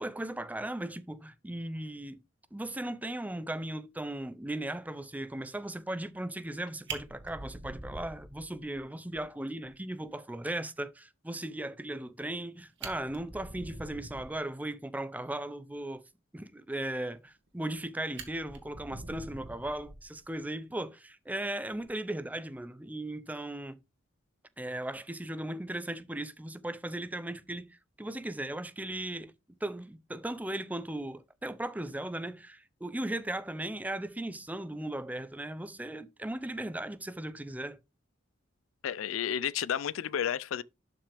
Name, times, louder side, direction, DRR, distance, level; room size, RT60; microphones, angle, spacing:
voice 1, 0.0-2.2 2.5-16.0 16.3-23.8 24.6-29.3 29.6-37.8, right 1 dB, 10° right, 0.5 m, -37 dB
Fire, 6.4-6.6 6.9-8.8 9.2-9.3 9.6-9.7 10.1-10.2 12.3-12.4 12.7-14.4 17.3-17.8 18.2-20.4 21.7-21.9, right 3 dB, 60° right, 2.0 m, -44 dB
voice 2, 38.8-40.6, left 9 dB, 85° left, 0.4 m, -31 dB
11.5 x 5.9 x 3.4 m
head